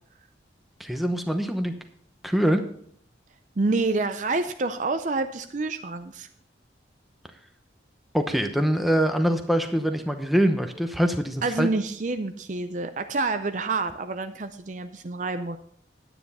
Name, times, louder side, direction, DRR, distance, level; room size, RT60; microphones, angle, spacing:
voice 1, 0.8-1.7 2.2-2.6 8.1-11.7, equal, ahead, 6 dB, 0.8 m, -24 dB
voice 2, 3.6-6.3 11.4-15.6, right 3 dB, 40° right, 9 dB, 0.5 m, -28 dB
10.0 x 9.4 x 4.1 m, 0.64 s
head